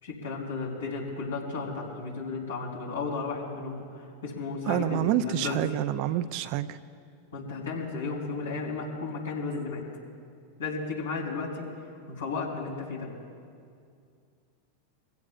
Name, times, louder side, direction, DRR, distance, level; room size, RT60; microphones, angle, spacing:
voice 1, 0.0-5.8 7.3-9.8 10.6-13.1, left 4 dB, 85° left, -4 dB, 3.7 m, -34 dB
voice 2, 4.7-6.8, right 12 dB, 55° right, 12 dB, 0.5 m, -28 dB
23.0 x 16.5 x 2.5 m, 2.3 s
hypercardioid pair, 95°, 0 cm